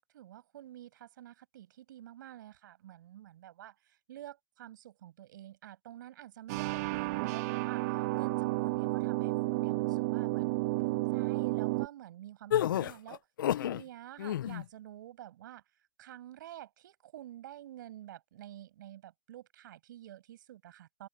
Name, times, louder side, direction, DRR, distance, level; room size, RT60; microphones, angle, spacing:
voice 1, 0.1-10.5 10.8-13.2 13.5-15.6 16.0-21.1, right 13 dB, 65° right, 7.8 m, -49 dB
sound 1, 6.5-11.9, right 22 dB, 50° right, 1.2 m, -31 dB
sound 2, 12.5-13.8 14.2-14.6, left 11 dB, 70° left, 0.5 m, -30 dB
open air
hypercardioid pair, 120°, 11 cm